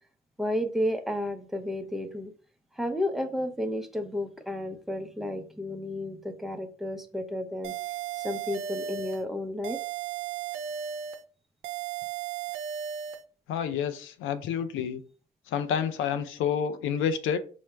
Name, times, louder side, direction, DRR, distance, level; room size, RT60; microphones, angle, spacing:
voice 1, 0.4-2.3 2.7-7.7 8.2-9.8, left 1 dB, ahead, 0.5 m, -32 dB
sound 1, 7.6-9.2 9.6-11.2 11.6-13.2, right 9 dB, 85° right, 0.5 m, -35 dB
voice 2, 13.5-15.0 15.5-17.4, left 8 dB, 85° left, 0.5 m, -29 dB
4.6 x 2.1 x 3.2 m
cardioid pair, 90°, 20 cm